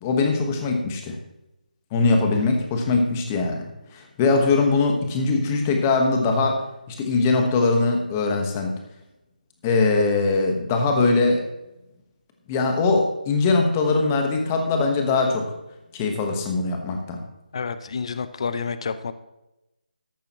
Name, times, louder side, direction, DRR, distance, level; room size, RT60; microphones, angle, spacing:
voice 1, 0.0-1.2 1.9-8.7 9.6-11.5 12.5-15.5 15.9-17.2, left 3 dB, 15° left, 4 dB, 1.2 m, -21 dB
voice 2, 17.5-19.1, left 5 dB, 40° left, 12 dB, 0.5 m, -29 dB
13.5 x 11.5 x 3.0 m, 0.93 s
figure-of-eight pair, 170°, 5 cm